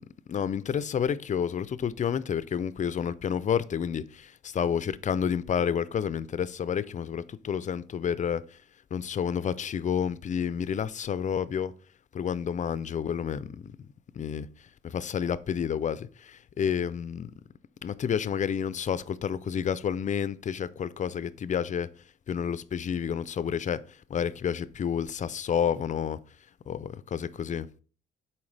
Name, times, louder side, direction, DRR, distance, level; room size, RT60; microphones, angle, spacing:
voice 1, 0.3-8.6 8.9-11.7 12.1-13.9 14.1-14.5 14.8-17.3 17.8-21.9 22.3-26.2 26.7-27.7, left 8 dB, 40° left, 0.4 m, -30 dB
7.1 x 4.4 x 3.3 m
cardioid pair, 90°, 20 cm